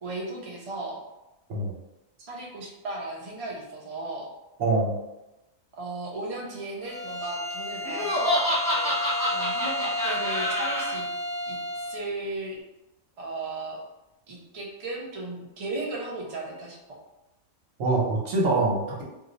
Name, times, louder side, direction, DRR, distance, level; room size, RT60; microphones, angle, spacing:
voice 1, 0.0-1.0 2.2-4.3 5.8-8.4 8.7-8.9 9.3-11.1 11.4-12.6 13.2-13.8 14.3-17.0, right 2 dB, 40° right, -3 dB, 0.5 m, -36 dB
voice 2, 4.6-5.0 17.8-19.0, right 2 dB, 75° right, -3 dB, 1.2 m, -24 dB
Bowed string instrument, 6.8-12.1, equal, 55° left, 0.4 m, -32 dB
Laughter, 7.8-10.9, left 1 dB, 20° left, 0.6 m, -27 dB
2.7 x 2.2 x 3.8 m, 0.96 s
omnidirectional pair, 1.4 m